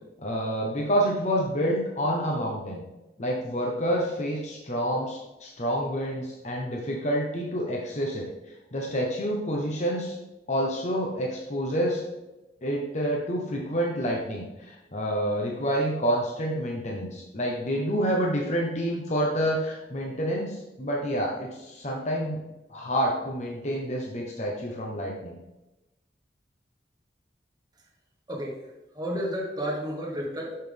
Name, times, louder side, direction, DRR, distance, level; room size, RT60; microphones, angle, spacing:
voice 1, 0.2-2.8 3.2-10.2 10.5-12.0 12.6-22.4 22.7-25.4, equal, 40° left, -1 dB, 0.9 m, -28 dB
voice 2, 28.3-30.6, equal, 25° right, -2 dB, 1.4 m, -32 dB
6.6 x 5.9 x 3.4 m, 0.99 s
head